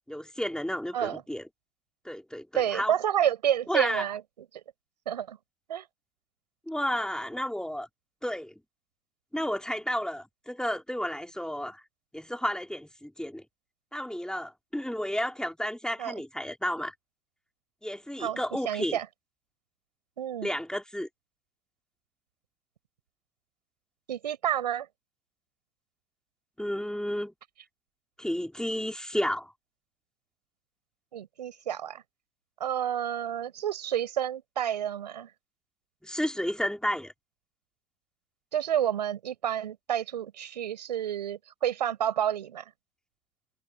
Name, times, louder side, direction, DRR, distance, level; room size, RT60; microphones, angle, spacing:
voice 1, 0.1-1.5 2.0-2.9 3.7-4.1 6.7-7.9 8.2-8.5 9.3-11.8 12.1-13.4 13.9-16.9 17.8-19.0 20.4-21.1 26.6-27.3 28.2-29.5 36.0-37.1, equal, 5° left, 3.8 m, -32 dB
voice 2, 2.5-4.2 5.1-5.4 5.7-5.9 16.0-16.1 18.2-18.4 18.6-19.1 20.2-20.5 24.1-24.9 31.1-32.0 32.6-35.3 38.5-42.6, right 10 dB, 90° right, 6.4 m, -29 dB
hypercardioid pair, 65°, 21 cm